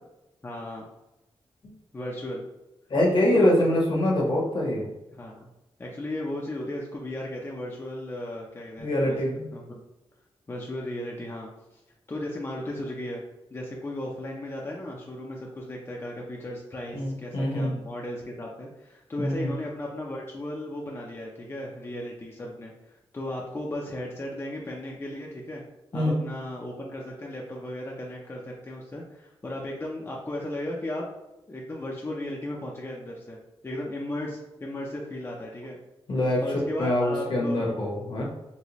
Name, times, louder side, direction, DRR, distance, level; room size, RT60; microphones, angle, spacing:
voice 1, 0.4-0.9 1.9-2.4 3.3-3.6 5.1-5.5 5.8-9.2 9.5-9.8 10.5-11.8 12.1-13.2 13.5-25.6 25.9-31.1 31.5-33.4 33.6-35.8 36.4-37.7, left 1 dB, 25° left, -2 dB, 0.5 m, -35 dB
voice 2, 2.9-4.9 8.8-9.4 16.9-17.8 19.2-19.6 25.9-26.2 36.1-36.4 36.8-38.2, left 1 dB, 55° left, -2 dB, 0.9 m, -24 dB
4.0 x 2.1 x 3.0 m, 0.98 s
wide cardioid pair, 100°, 10 cm